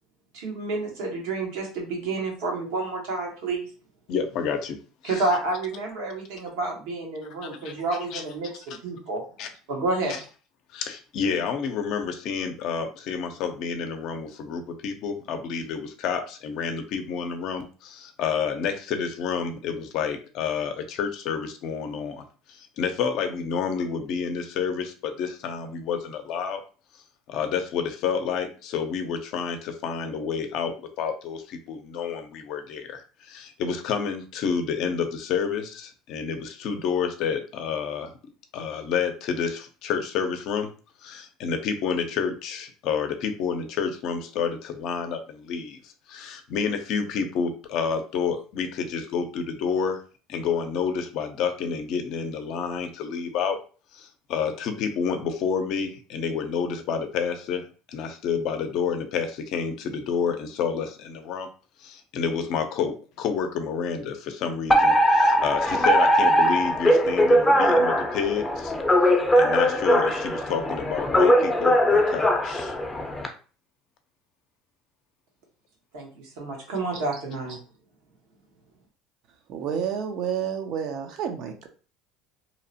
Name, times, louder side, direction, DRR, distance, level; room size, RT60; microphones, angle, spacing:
voice 1, 0.3-3.7 5.0-9.2 9.7-10.1 75.9-77.6, right 3 dB, 80° right, -1 dB, 1.1 m, -29 dB
voice 2, 4.1-4.8 5.0-5.3 7.4-7.7 8.1-8.2 9.4-9.5 10.7-26.6 27.3-38.1 38.5-40.7 41.0-50.0 50.3-53.6 53.9-61.5 61.8-68.7 69.4-72.8, left 6 dB, 65° left, 6 dB, 0.5 m, -29 dB
Alarm, 64.7-73.3, equal, 15° left, 0.5 m, -20 dB
voice 3, 79.5-81.7, right 8 dB, 60° right, 5 dB, 0.6 m, -30 dB
2.8 x 2.0 x 2.7 m, 0.37 s
supercardioid pair, 90°, 0 cm